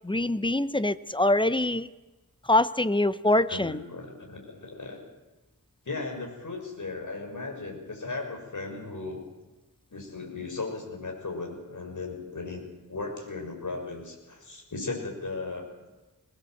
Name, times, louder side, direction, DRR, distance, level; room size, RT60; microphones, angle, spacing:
voice 1, 0.0-1.9 2.5-3.8, left 1 dB, 15° left, 14 dB, 0.8 m, -24 dB
voice 2, 3.5-5.0 5.8-9.2 9.9-15.6, left 3 dB, 55° left, 1 dB, 6.3 m, -36 dB
22.5 x 19.5 x 7.8 m, 1.1 s
wide cardioid pair, 100°, 37 cm